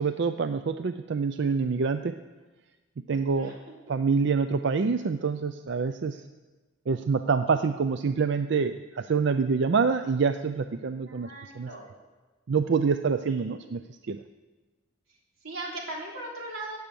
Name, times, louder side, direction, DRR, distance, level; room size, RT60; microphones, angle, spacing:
voice 1, 0.0-2.1 3.1-3.5 3.9-6.2 6.9-11.3 11.6-11.7 12.5-13.8 14.1-14.2, right 5 dB, 60° right, 9 dB, 0.4 m, -26 dB
voice 2, 3.1-4.0 10.7-11.9 13.3-13.6 15.1-16.8, right 2 dB, 85° right, -2 dB, 3.6 m, -40 dB
16.5 x 8.1 x 7.0 m, 1.2 s
head